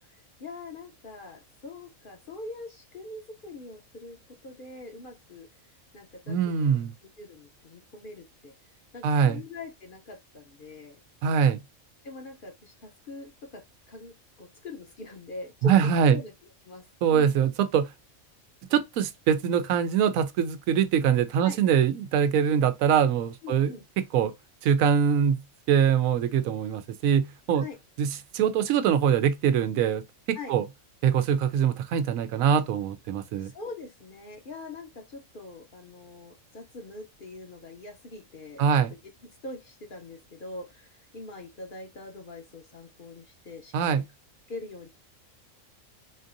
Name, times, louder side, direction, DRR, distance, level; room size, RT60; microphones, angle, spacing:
voice 1, 0.0-5.5 5.9-6.8 7.2-8.5 8.9-11.0 12.0-13.6 13.9-16.3 16.6-17.4 21.4-21.6 23.4-23.8 27.5-27.8 30.3-30.5 33.4-38.6 39.4-44.0 44.5-44.9, left 2 dB, 45° left, 0.8 m, -43 dB
voice 2, 6.3-6.9 9.0-9.4 11.2-11.6 15.6-16.2 17.0-17.9 18.7-23.7 24.1-24.3 24.6-25.4 25.7-27.6 28.0-28.1 28.3-30.0 30.3-30.6 31.0-33.5 38.6-38.9 43.7-44.0, right 8 dB, 90° right, 1.0 m, -23 dB
4.1 x 2.6 x 2.5 m
omnidirectional pair, 1.4 m